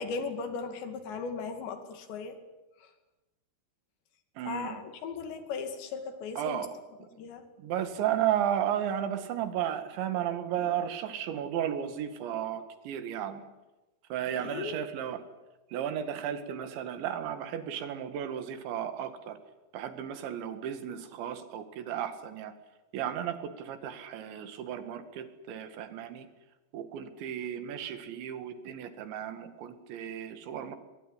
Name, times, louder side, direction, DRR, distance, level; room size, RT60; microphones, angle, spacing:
voice 1, 0.0-2.4 2.8-2.9 4.5-6.7 7.2-7.4 14.4-14.7, left 5 dB, 75° left, 7 dB, 4.6 m, -37 dB
voice 2, 4.4-4.8 6.4-6.7 7.6-13.5 14.1-15.2 15.7-19.4 19.7-22.5 22.9-26.3 26.7-30.8, right 10 dB, 90° right, 9 dB, 4.3 m, -34 dB
22.5 x 22.5 x 10.0 m, 1.1 s
omnidirectional pair, 5.1 m